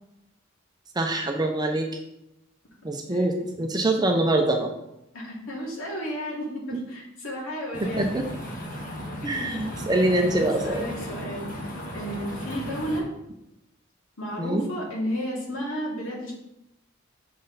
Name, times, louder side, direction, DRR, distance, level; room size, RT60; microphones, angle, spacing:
voice 1, 1.0-2.0 2.8-4.7 6.7-6.8 7.8-8.2 9.2-10.8 14.4-14.7, right 1 dB, 20° right, 3 dB, 0.6 m, -24 dB
voice 2, 5.1-8.1 10.0-13.1 14.2-16.3, equal, 85° left, -4 dB, 2.5 m, -33 dB
sound 1, 7.7-13.0, equal, 45° left, 1.4 m, -36 dB
6.4 x 6.1 x 4.0 m, 0.86 s
head